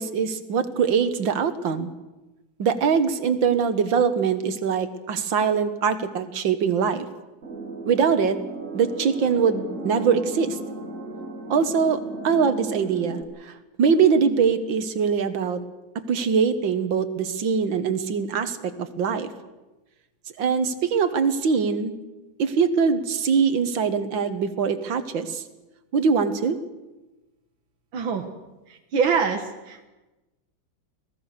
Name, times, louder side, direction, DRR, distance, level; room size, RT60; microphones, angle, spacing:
voice 1, 0.0-1.9 2.6-7.1 7.9-8.4 8.7-10.6 11.5-13.5 13.8-15.6 16.1-19.3 20.4-22.0 22.4-25.4 25.9-26.6, right 6 dB, 70° right, 11 dB, 2.1 m, -23 dB
sound 1, 7.4-13.2, right 3 dB, 40° right, 2.3 m, -35 dB
voice 2, 27.9-28.3 28.7-29.9, right 6 dB, 90° right, 4 dB, 2.2 m, -25 dB
26.0 x 18.0 x 6.7 m, 1.1 s
omnidirectional pair, 2.2 m